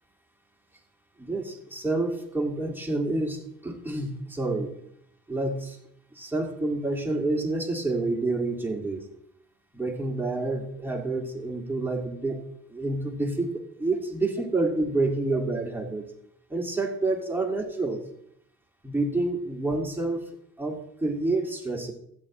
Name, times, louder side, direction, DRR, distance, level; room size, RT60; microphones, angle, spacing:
voice 1, 1.2-4.7 5.3-5.8 6.1-9.0 9.7-12.4 12.7-13.5 13.8-16.0 16.5-18.0 18.8-20.2 20.6-21.9, right 2 dB, 5° right, 0 dB, 2.1 m, -28 dB
15.5 x 8.5 x 3.0 m, 0.70 s
cardioid pair, 90°, 30 cm